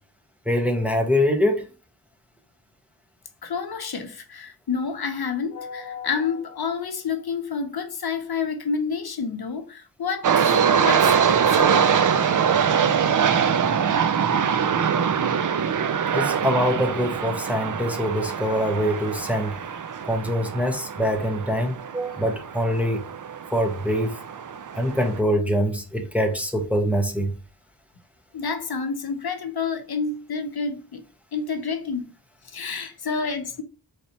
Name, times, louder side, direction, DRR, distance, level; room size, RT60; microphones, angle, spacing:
voice 1, 0.5-1.6 16.1-19.6 20.1-23.0 23.5-24.1 24.7-27.3, equal, 5° right, 0.8 m, -24 dB
voice 2, 3.4-12.0 28.3-31.0 31.3-32.1 32.5-33.6, left 5 dB, 65° left, 0.7 m, -29 dB
sound 1, 10.2-25.2, right 7 dB, 50° right, 0.4 m, -23 dB
4.1 x 3.4 x 2.8 m
wide cardioid pair, 90°, 40 cm